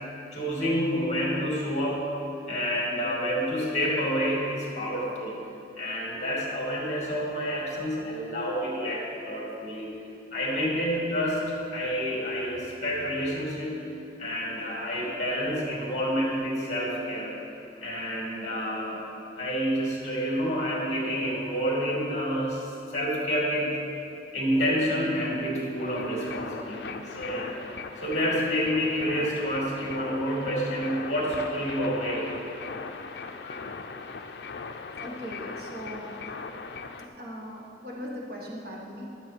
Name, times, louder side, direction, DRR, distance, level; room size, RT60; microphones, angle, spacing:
voice 1, 0.3-2.1 2.5-5.4 5.8-10.0 10.3-11.4 11.7-13.8 14.2-17.4 17.8-19.1 19.4-23.9 24.3-27.5 28.0-32.3 33.4-33.6, equal, 40° left, -3 dB, 2.4 m, -28 dB
sound 1, 25.8-37.1, left 4 dB, 65° left, 0.5 m, -39 dB
voice 2, 35.0-36.3 37.0-39.0, equal, 55° right, -2 dB, 1.5 m, -39 dB
12.5 x 7.0 x 4.5 m, 2.7 s
head